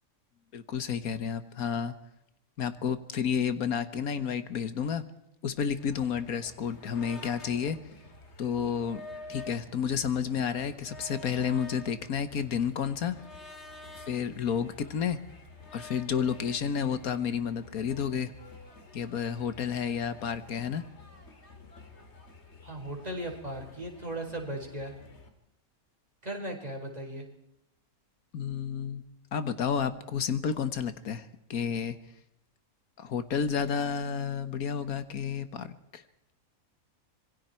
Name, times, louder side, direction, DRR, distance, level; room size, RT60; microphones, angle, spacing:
voice 1, 0.5-1.9 2.6-5.0 5.4-7.8 8.4-9.0 9.3-13.2 14.0-15.2 15.7-18.3 18.9-20.8 28.3-29.0 29.3-32.0 33.0-36.0, left 7 dB, 85° left, 12 dB, 1.7 m, -31 dB
sound 1, 5.8-25.3, left 2 dB, 50° left, 2.7 m, -49 dB
voice 2, 22.6-24.9 26.2-27.2, right 1 dB, 25° right, 1 dB, 4.7 m, -37 dB
26.0 x 22.0 x 4.5 m, 0.84 s
omnidirectional pair, 1.5 m